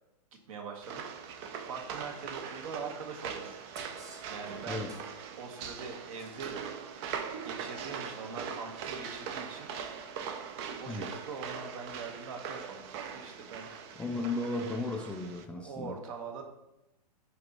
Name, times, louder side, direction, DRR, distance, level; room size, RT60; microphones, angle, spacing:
voice 1, 0.5-3.6 4.3-4.9 5.4-6.6 7.4-10.0 10.8-13.7 15.6-16.4, right 5 dB, 55° right, 4 dB, 1.2 m, -43 dB
sound 1, 0.8-15.4, right 7 dB, 40° right, 0.6 m, -41 dB
sound 2, 3.7-5.1 6.1-6.5 8.6-8.7, right 2 dB, 15° right, 0.9 m, -52 dB
voice 2, 4.7-5.0 10.9-11.1 14.0-16.0, left 2 dB, 5° left, 1 dB, 0.3 m, -35 dB
6.5 x 2.8 x 5.2 m, 0.93 s
hypercardioid pair, 115°, 21 cm